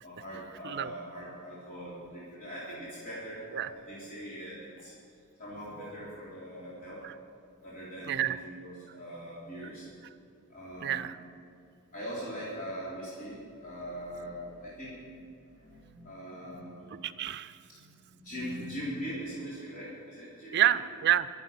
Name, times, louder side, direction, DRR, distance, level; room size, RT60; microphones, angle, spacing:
voice 1, 0.0-4.9 5.4-7.0 7.6-9.9 10.5-11.1 11.9-17.1 17.7-20.8, equal, 40° left, -9 dB, 3.8 m, -41 dB
voice 2, 8.1-8.4 10.8-11.2 17.0-17.6 20.5-21.3, right 12 dB, 50° right, 13 dB, 0.5 m, -28 dB
23.5 x 8.0 x 5.8 m, 2.4 s
head